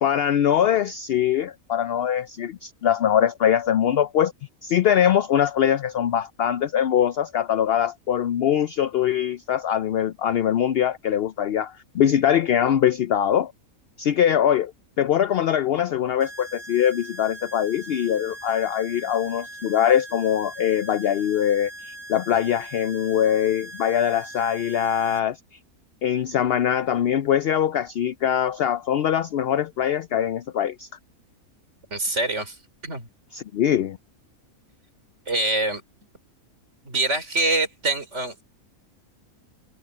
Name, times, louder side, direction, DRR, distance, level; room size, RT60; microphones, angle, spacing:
voice 1, 0.0-4.3 4.6-13.5 14.0-14.7 15.0-25.4 26.0-30.9 33.3-34.0, left 9 dB, 75° left, 0.5 m, -22 dB
sound 1, 16.2-25.2, right 1 dB, 75° right, 3.3 m, -41 dB
voice 2, 31.9-32.6 32.8-33.1 35.3-35.8 36.8-38.4, right 2 dB, 50° right, 4.6 m, -25 dB
omnidirectional pair, 1.5 m